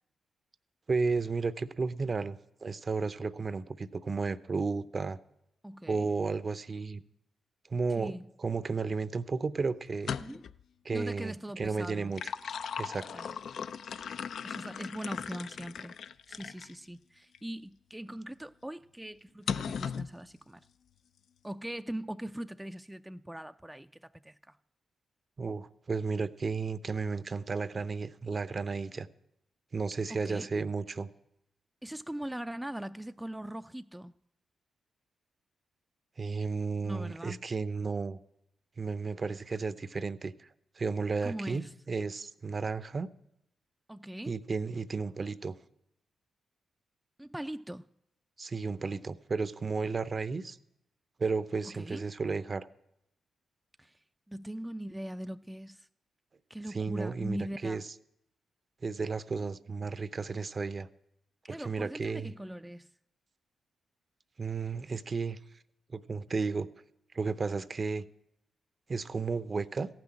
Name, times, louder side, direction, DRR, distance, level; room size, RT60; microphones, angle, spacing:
voice 1, 0.9-5.2 5.9-7.0 7.7-8.1 8.4-10.1 10.8-12.2 12.7-13.1 25.4-29.1 29.7-31.1 36.2-38.2 38.8-40.5 40.8-43.1 44.3-45.6 48.4-50.6 51.2-52.7 56.7-57.8 58.8-60.9 61.5-62.3 64.4-65.4 65.9-66.7 67.1-68.1 68.9-69.9, right 4 dB, 45° right, 0.6 m, -33 dB
voice 2, 5.6-6.1 8.0-8.3 10.2-10.5 10.9-12.2 13.1-13.4 14.4-16.0 16.3-20.7 21.4-24.6 30.1-30.5 31.8-34.1 36.8-37.5 41.2-41.7 43.9-44.4 47.2-47.9 51.7-52.1 53.8-55.9 56.5-57.8 61.4-62.9, right 1 dB, 10° right, 0.4 m, -41 dB
sound 1, 9.9-10.6 11.9-16.7 17.3-17.5 19.5-20.1, left 7 dB, 70° left, 0.4 m, -38 dB
15.0 x 6.1 x 8.8 m
hypercardioid pair, 45°, 0 cm